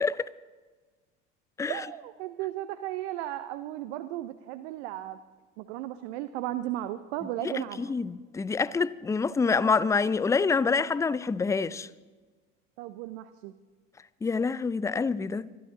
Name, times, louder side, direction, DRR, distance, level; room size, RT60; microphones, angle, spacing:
voice 1, 1.7-5.2 5.6-7.9 12.8-13.5, right 14 dB, 65° right, 0.7 m, -35 dB
voice 2, 7.4-11.9 14.2-15.5, left 4 dB, 10° left, 0.4 m, -27 dB
24.5 x 11.0 x 3.8 m
hypercardioid pair, 70°, 36 cm